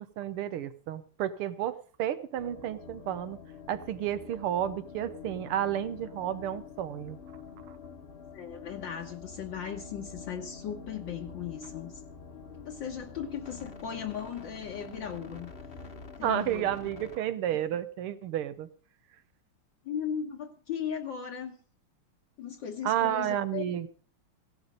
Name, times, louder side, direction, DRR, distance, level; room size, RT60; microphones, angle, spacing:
voice 1, 0.2-3.4 3.7-7.2 16.2-18.7 22.8-23.9, right 11 dB, 90° right, 12 dB, 1.9 m, -31 dB
sound 1, 2.4-17.2, left 5 dB, 35° left, 1.1 m, -46 dB
voice 2, 8.3-11.9 12.6-15.5 16.2-16.7 19.8-21.6 22.4-23.8, left 8 dB, 65° left, 1 dB, 1.8 m, -37 dB
16.5 x 11.5 x 5.2 m, 0.41 s
omnidirectional pair, 2.3 m